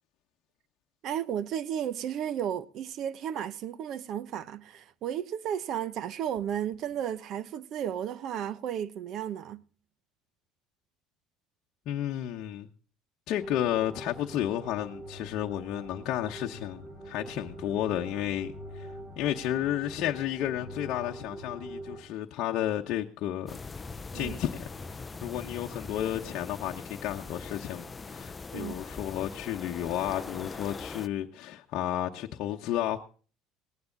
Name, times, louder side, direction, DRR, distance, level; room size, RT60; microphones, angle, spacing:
voice 1, 1.0-9.6 24.1-24.4 28.5-28.8, right 9 dB, 50° right, 0.8 m, -33 dB
voice 2, 11.9-12.7 13.3-23.6 24.1-33.0, left 12 dB, 60° left, 0.9 m, -32 dB
sound 1, 13.4-22.0, right 1 dB, 15° right, 4.3 m, -44 dB
sound 2, 23.5-31.1, left 4 dB, 20° left, 0.5 m, -41 dB
19.0 x 9.5 x 3.9 m
cardioid pair, 135°, 0 cm